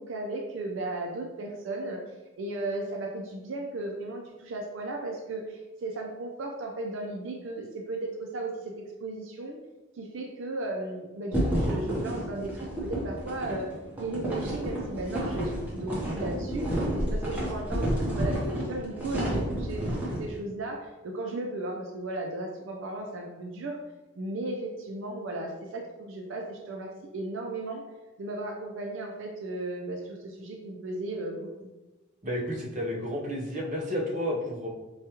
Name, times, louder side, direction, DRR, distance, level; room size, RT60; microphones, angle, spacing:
voice 1, 0.0-2.0 2.4-9.6 10.0-12.5 12.8-23.8 24.2-27.8 28.2-31.5, right 2 dB, 70° right, 0 dB, 0.5 m, -35 dB
sound 1, 11.3-20.2, right 1 dB, 10° right, 0.8 m, -30 dB
voice 2, 32.2-34.7, left 1 dB, 35° right, -2 dB, 0.7 m, -31 dB
4.7 x 2.3 x 2.9 m, 1.1 s
head